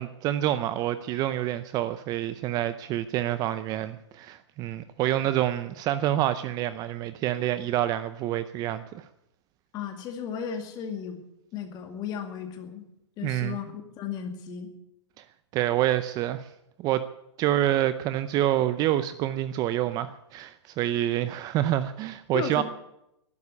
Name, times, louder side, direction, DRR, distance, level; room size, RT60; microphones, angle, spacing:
voice 1, 0.0-9.0 13.2-13.6 15.5-16.5 16.8-17.0 17.4-22.6, right 13 dB, 25° right, 13 dB, 0.6 m, -27 dB
voice 2, 9.7-11.2 11.5-12.9 13.2-14.7 22.3-22.6, left 7 dB, 30° left, 5 dB, 2.3 m, -35 dB
12.0 x 10.5 x 9.8 m, 0.83 s
hypercardioid pair, 140°, 15 cm